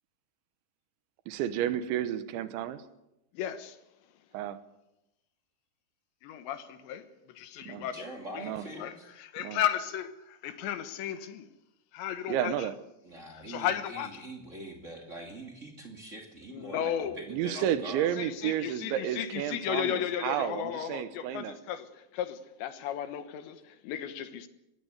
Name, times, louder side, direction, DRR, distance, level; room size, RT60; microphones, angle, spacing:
voice 1, 1.3-2.8 4.3-4.6 7.7-7.8 8.4-8.6 9.4-9.6 12.3-12.7 17.3-21.5, right 11 dB, 80° right, 12 dB, 3.4 m, -31 dB
voice 2, 3.3-3.8 6.2-8.0 8.3-11.5 11.9-12.7 13.3-14.3 16.5-17.2 17.5-17.7 18.1-24.5, left 10 dB, 75° left, 10 dB, 3.5 m, -35 dB
voice 3, 7.7-8.9 13.0-18.2, right 1 dB, 25° right, 2 dB, 1.7 m, -44 dB
24.0 x 18.5 x 8.2 m, 0.93 s
omnidirectional pair, 5.3 m